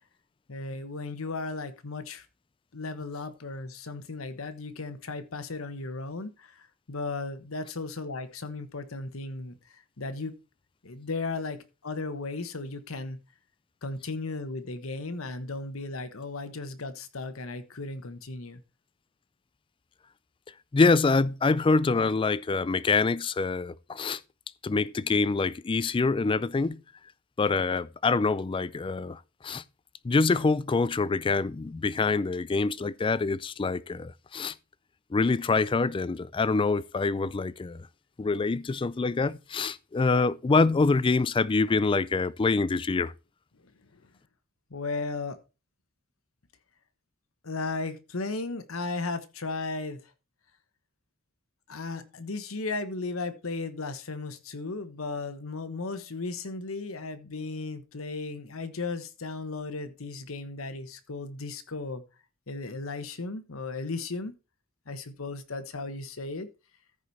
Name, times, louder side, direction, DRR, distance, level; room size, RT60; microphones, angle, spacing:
voice 1, 0.5-2.3 2.7-10.4 10.8-13.2 13.8-18.6 43.5-44.0 44.7-45.4 47.4-50.0 51.7-62.0 62.5-64.3 64.9-66.5, left 3 dB, 80° left, 1.1 m, -35 dB
voice 2, 20.7-24.2 24.6-26.8 27.4-29.6 30.0-34.5 35.1-37.9 38.2-43.1, left 3 dB, 25° left, 0.4 m, -25 dB
14.0 x 5.0 x 4.1 m
head